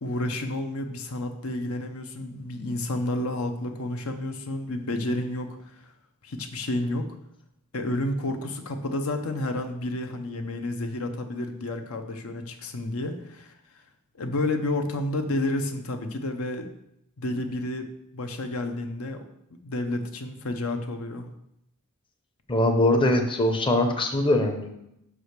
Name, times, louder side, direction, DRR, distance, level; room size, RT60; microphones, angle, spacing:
voice 1, 0.0-5.9 6.2-7.2 7.7-13.5 14.2-16.7 17.2-19.2 19.6-21.3, left 1 dB, 70° left, 6 dB, 0.8 m, -30 dB
voice 2, 22.5-24.7, left 1 dB, 20° left, 4 dB, 0.7 m, -22 dB
5.6 x 4.9 x 6.5 m, 0.83 s
head